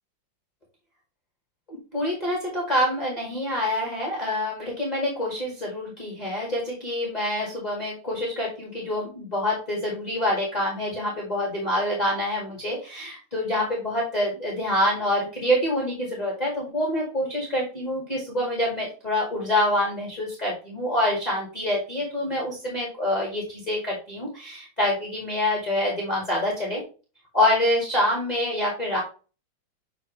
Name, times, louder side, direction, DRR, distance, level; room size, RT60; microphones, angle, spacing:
voice 1, 1.7-26.8 27.3-29.0, left 1 dB, 20° left, -3 dB, 2.0 m, -26 dB
7.5 x 4.1 x 3.2 m, 0.35 s
omnidirectional pair, 2.1 m